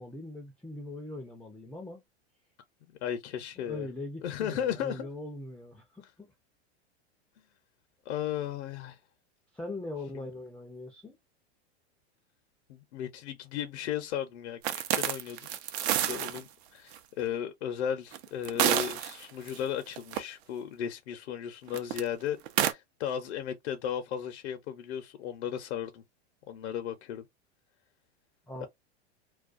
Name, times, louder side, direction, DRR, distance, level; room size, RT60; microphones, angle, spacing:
voice 1, 0.0-2.0 3.6-6.3 9.5-11.2 28.5-28.7, left 2 dB, 5° left, 0.4 m, -41 dB
voice 2, 2.8-3.9 4.2-5.1 8.1-9.0 10.1-10.3 12.7-14.6 14.9-26.0 26.5-27.2 28.6-28.7, left 9 dB, 75° left, 0.7 m, -35 dB
sound 1, 14.6-16.4 16.9-17.0 18.1-19.6 20.0-20.2 21.7-22.0 22.5-22.7, right 11 dB, 70° right, 0.6 m, -29 dB
2.3 x 2.2 x 2.4 m
hypercardioid pair, 120°, 34 cm